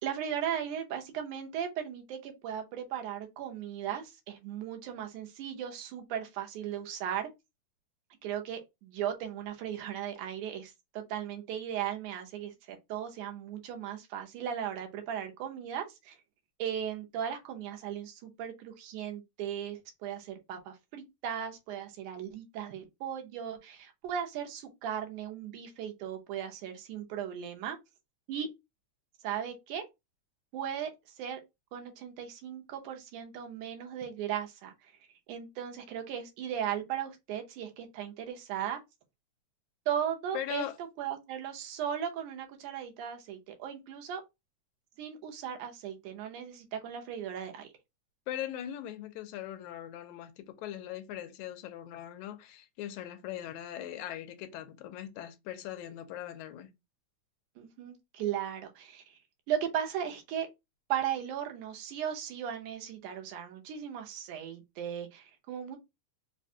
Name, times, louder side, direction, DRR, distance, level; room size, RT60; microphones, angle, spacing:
voice 1, 0.0-7.3 8.2-16.2 16.6-27.8 28.3-28.5 29.2-29.8 30.5-30.9 31.2-31.4 31.7-34.9 35.3-38.8 39.9-44.2 45.0-47.7 57.6-59.2 59.5-60.5 60.9-65.8, right 9 dB, 80° right, 2.1 m, -37 dB
voice 2, 40.3-40.7 48.3-56.7, left 12 dB, 80° left, 1.8 m, -40 dB
4.9 x 2.1 x 2.7 m
omnidirectional pair, 3.6 m